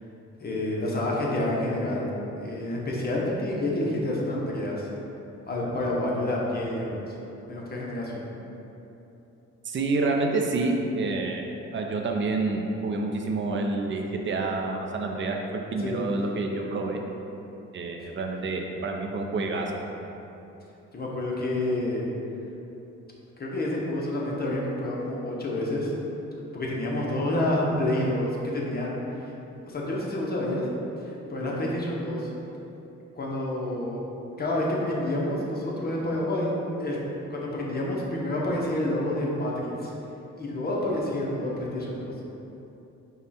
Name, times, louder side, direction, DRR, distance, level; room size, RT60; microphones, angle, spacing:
voice 1, 0.4-2.1 2.4-4.9 5.5-7.1 7.5-8.3 15.8-16.0 20.9-22.1 23.4-25.9 26.5-29.0 29.2-29.3 29.7-30.7 31.0-32.3 33.1-34.0 34.4-36.5 36.8-37.0 37.3-39.9 40.4-42.1, left 1 dB, 30° left, -4 dB, 0.9 m, -28 dB
voice 2, 9.6-11.4 11.7-15.4 15.7-17.0 17.7-19.8, right 3 dB, 40° right, 2 dB, 0.6 m, -28 dB
5.3 x 2.4 x 4.2 m, 3.0 s
cardioid pair, 90°, 30 cm